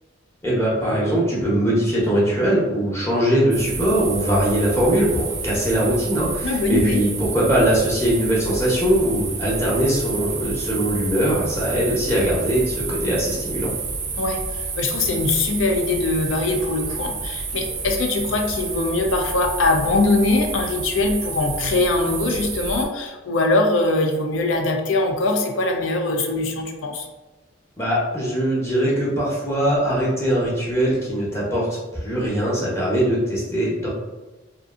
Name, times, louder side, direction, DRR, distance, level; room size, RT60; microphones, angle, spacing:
voice 1, 0.4-13.7 27.8-33.9, right 1 dB, 15° left, -6 dB, 0.7 m, -21 dB
sound 1, 3.5-22.9, right 4 dB, 40° right, 0.4 m, -30 dB
voice 2, 6.4-7.0 14.2-27.1, left 2 dB, 90° left, 3 dB, 0.4 m, -22 dB
2.6 x 2.4 x 2.4 m, 1.1 s
head